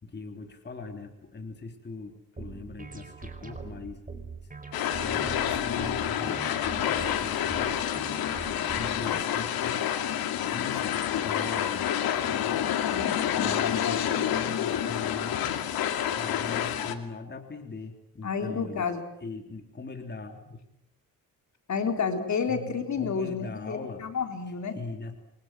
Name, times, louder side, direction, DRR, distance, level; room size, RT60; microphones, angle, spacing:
voice 1, 0.0-4.0 5.0-7.8 8.1-9.8 10.4-12.0 12.2-12.6 12.9-13.0 13.3-15.6 16.1-18.9 19.2-20.6 22.1-24.1 24.7-25.2, left 3 dB, 30° left, 4 dB, 3.5 m, -41 dB
sound 1, 2.4-9.2, right 4 dB, 25° right, 4.6 m, -42 dB
sound 2, 4.7-17.0, left 10 dB, 85° left, 2.6 m, -28 dB
voice 2, 12.7-14.2 18.2-19.0 21.7-24.7, left 5 dB, 50° left, 5 dB, 3.9 m, -31 dB
29.0 x 24.0 x 7.6 m, 0.81 s
cardioid pair, 115°, 35 cm